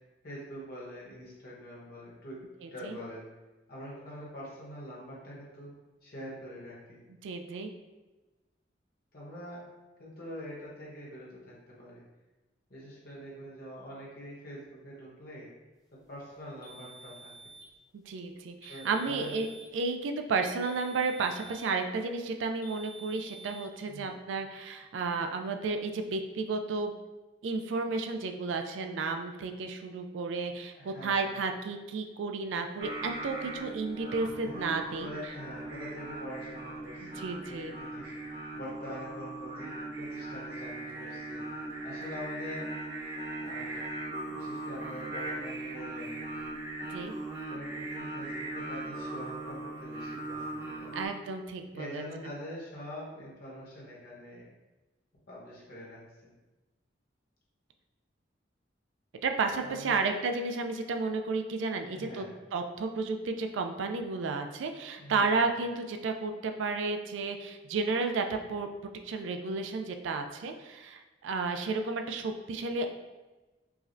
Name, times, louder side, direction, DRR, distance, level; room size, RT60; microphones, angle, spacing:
voice 1, 0.2-2.4 2.7-3.3 3.7-5.7 6.0-7.0 9.1-9.6 10.0-12.0 12.7-15.5 16.1-17.3 18.7-19.4 23.9-24.2 30.8-31.4 34.4-34.6 35.0-41.4 41.8-42.7 43.4-43.8 44.2-46.3 47.5-51.0 51.7-54.5 55.3-56.0 59.6-60.0 61.9-62.3 65.0-65.5, equal, 50° left, -5 dB, 1.0 m, -44 dB
voice 2, 2.6-3.0 7.2-7.7 17.9-19.5 19.7-26.9 27.4-35.1 37.0-37.7 46.9-47.1 50.9-52.0 59.2-62.2 62.5-68.7 69.0-72.9, right 4 dB, 85° right, 5 dB, 0.3 m, -32 dB
sound 1, 16.6-17.7 18.6-19.7 20.6-21.8 22.6-23.7, right 3 dB, 20° left, 0.6 m, -49 dB
Singing, 32.8-51.1, right 2 dB, 50° right, 1.1 m, -39 dB
4.7 x 2.1 x 2.6 m, 1.1 s
head